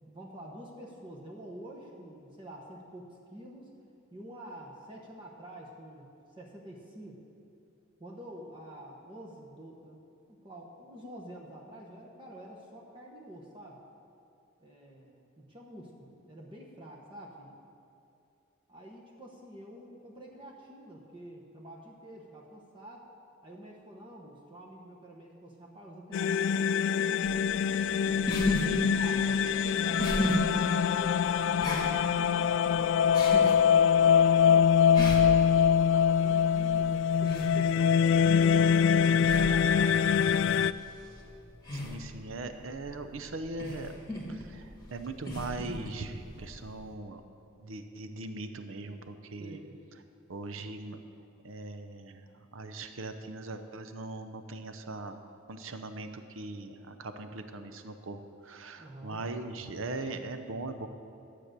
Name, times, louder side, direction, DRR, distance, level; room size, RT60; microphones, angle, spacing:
voice 1, 0.0-3.7 4.1-7.2 8.0-10.0 10.3-13.8 14.6-17.5 18.7-23.1 23.4-28.3 28.7-30.5 31.0-34.8 35.2-40.0 49.4-49.8 58.8-59.2, right 1 dB, 25° right, -2 dB, 1.1 m, -47 dB
sound 1, 26.1-40.7, left 7 dB, 65° left, 0.3 m, -24 dB
sound 2, 27.2-46.9, left 1 dB, 20° left, 1.6 m, -37 dB
voice 2, 41.7-43.9 44.3-47.2 47.6-49.6 50.3-51.0 51.4-52.2 52.5-55.2 55.5-58.2 58.4-60.9, right 2 dB, 70° right, 8 dB, 0.7 m, -40 dB
12.5 x 7.7 x 6.7 m, 2.7 s
head